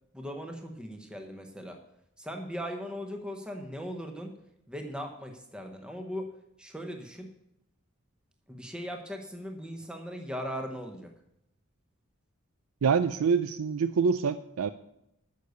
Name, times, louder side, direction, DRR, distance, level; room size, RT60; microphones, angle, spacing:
voice 1, 0.1-1.8 2.2-4.4 4.7-6.3 6.6-7.3 8.5-11.1, equal, 5° right, 3 dB, 0.9 m, -39 dB
voice 2, 12.8-14.7, right 5 dB, 85° right, 12 dB, 0.4 m, -26 dB
10.0 x 6.5 x 8.1 m, 0.80 s
head